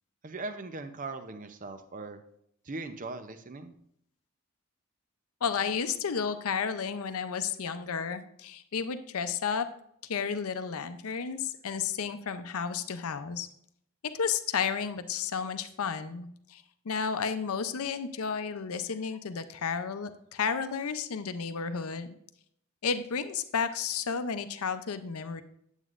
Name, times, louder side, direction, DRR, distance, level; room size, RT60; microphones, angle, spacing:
voice 1, 0.2-2.2 2.7-3.7, right 3 dB, 35° right, 9 dB, 0.6 m, -39 dB
voice 2, 5.4-9.7 10.1-13.5 14.2-22.2 22.8-25.4, left 6 dB, 80° left, 10 dB, 0.6 m, -32 dB
9.1 x 8.0 x 2.5 m, 0.71 s
head